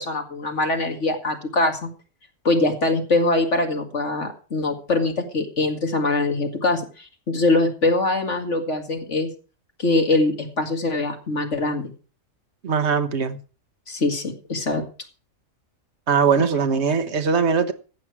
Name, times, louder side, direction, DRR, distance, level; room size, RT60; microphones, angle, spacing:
voice 1, 0.0-1.9 2.4-9.3 9.8-11.9 13.9-14.8, left 2 dB, 60° left, 4 dB, 2.4 m, -23 dB
voice 2, 12.6-13.4 16.1-17.7, right 5 dB, 55° right, 9 dB, 1.4 m, -20 dB
15.0 x 8.9 x 4.8 m, 0.36 s
omnidirectional pair, 1.4 m